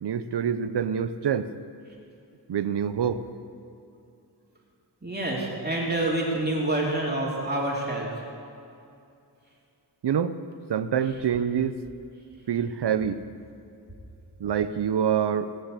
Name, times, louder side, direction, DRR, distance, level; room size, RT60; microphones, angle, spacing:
voice 1, 0.0-1.5 2.5-3.2 10.0-10.4 10.7-11.8 12.5-13.2 14.4-15.5, right 8 dB, 70° right, 12 dB, 0.8 m, -26 dB
voice 2, 5.0-8.1, right 1 dB, 25° right, -4 dB, 2.8 m, -27 dB
18.5 x 6.6 x 8.3 m, 2.6 s
wide cardioid pair, 85°, 43 cm